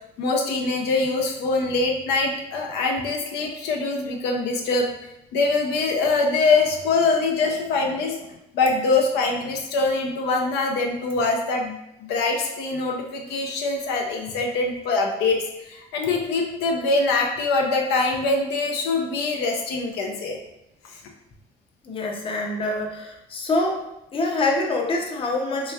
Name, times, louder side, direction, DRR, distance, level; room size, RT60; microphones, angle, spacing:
voice 1, 0.2-4.9 5.3-8.2 8.5-11.8 12.1-20.4, left 3 dB, 85° left, 1 dB, 0.6 m, -23 dB
voice 2, 21.8-23.8 24.1-25.7, left 2 dB, 30° left, 1 dB, 0.6 m, -25 dB
3.2 x 3.1 x 2.3 m, 0.86 s
cardioid pair, 110°, 17 cm